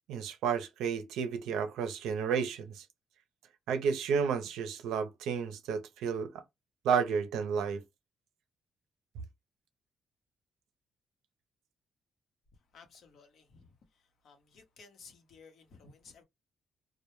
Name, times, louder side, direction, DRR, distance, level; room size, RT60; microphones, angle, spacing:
voice 1, 0.1-2.8 3.7-6.3 6.8-7.8, right 6 dB, 85° right, 0.5 m, -31 dB
voice 2, 12.7-13.7 14.2-16.2, left 4 dB, 70° left, 0.8 m, -56 dB
2.1 x 2.1 x 2.9 m
supercardioid pair, 65°, 0 cm